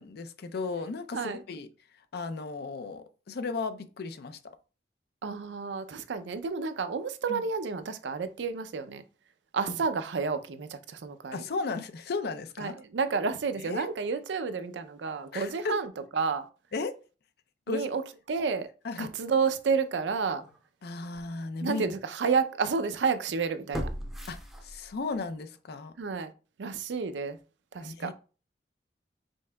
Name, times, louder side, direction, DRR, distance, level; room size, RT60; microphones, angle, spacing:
voice 1, 0.0-1.7 2.1-4.4 7.3-7.4 9.7-9.8 11.3-12.8 13.6-13.9 15.3-15.8 16.7-17.0 17.7-17.9 18.8-19.1 20.8-21.9 24.3-25.9 27.8-28.1, left 3 dB, 60° left, 0.5 m, -35 dB
voice 2, 5.2-9.0 9.5-11.4 12.6-16.5 17.7-18.0 18.3-18.7 19.0-20.4 21.6-23.9 26.0-26.3 26.6-27.4 27.7-28.1, right 5 dB, 85° right, 0.5 m, -30 dB
sound 1, 20.4-20.6 21.1-21.2 23.7-25.2 25.5-25.6, equal, ahead, 0.5 m, -37 dB
5.3 x 3.6 x 2.2 m
head